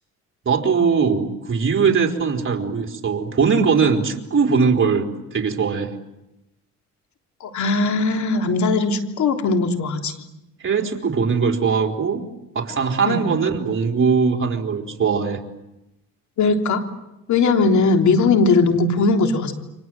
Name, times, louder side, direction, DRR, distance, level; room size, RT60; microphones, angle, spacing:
voice 1, 0.4-5.9 10.6-12.2 12.5-15.4, right 5 dB, 40° right, 1 dB, 4.1 m, -20 dB
voice 2, 7.4-10.1 13.0-13.3 16.4-16.8 17.3-19.5, left 3 dB, 70° left, 4 dB, 3.5 m, -19 dB
29.5 x 25.5 x 7.8 m, 0.91 s
cardioid pair, 90°, 30 cm